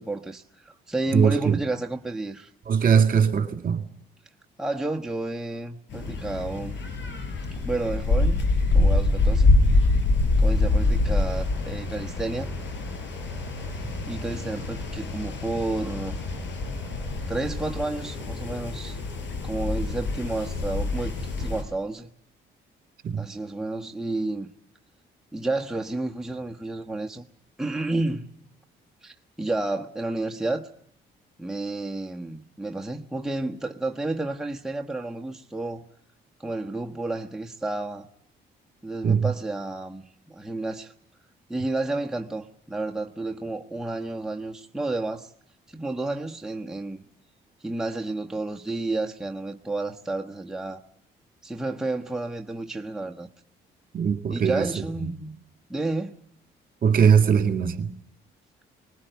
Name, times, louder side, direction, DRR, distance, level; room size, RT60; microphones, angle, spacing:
voice 1, 0.0-2.5 4.6-6.8 7.6-8.4 8.7-9.6 10.4-12.5 14.1-16.2 17.3-19.0 19.4-22.1 23.2-24.5 25.3-27.2 27.6-28.3 29.0-30.7 31.4-35.8 36.4-38.1 38.8-40.9 41.5-45.3 45.7-47.0 47.6-50.8 51.4-53.3 54.3-55.3 55.7-56.2, right 2 dB, 5° right, 1.3 m, -31 dB
voice 2, 1.1-1.6 2.7-3.8 23.0-23.3 39.0-39.3 53.9-55.1 56.8-57.9, right 7 dB, 45° right, 2.1 m, -21 dB
sound 1, 5.9-21.6, left 2 dB, 70° left, 5.0 m, -25 dB
20.0 x 20.0 x 9.2 m
supercardioid pair, 70°, 20 cm